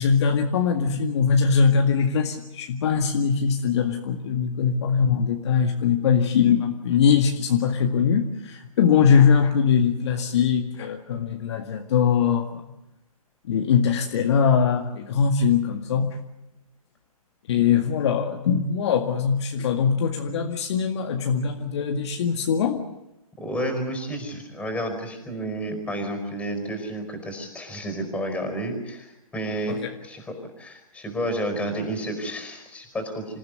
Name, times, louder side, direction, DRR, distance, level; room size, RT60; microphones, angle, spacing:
voice 1, 0.0-12.6 13.4-16.2 17.5-22.8 29.7-29.9, left 6 dB, 50° left, 4 dB, 2.0 m, -21 dB
voice 2, 23.4-33.4, right 1 dB, 5° left, 6 dB, 4.8 m, -31 dB
27.0 x 15.0 x 9.4 m, 0.95 s
figure-of-eight pair, 135°, 19 cm